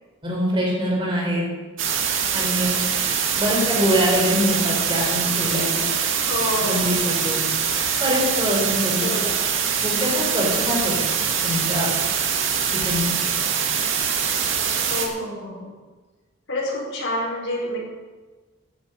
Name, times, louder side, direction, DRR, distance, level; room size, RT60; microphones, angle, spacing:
voice 1, 0.2-1.4 2.3-2.7 3.4-5.9 6.6-7.4 8.0-9.1 9.8-11.0 11.4-11.9 12.7-13.0, equal, 25° right, -3 dB, 4.4 m, -24 dB
sound 1, 1.8-15.1, right 7 dB, 75° right, 1.9 m, -23 dB
voice 2, 6.3-6.9 9.0-9.4 14.9-15.7 16.5-17.8, left 1 dB, 65° left, -3 dB, 5.0 m, -28 dB
14.0 x 10.5 x 5.4 m, 1.3 s
head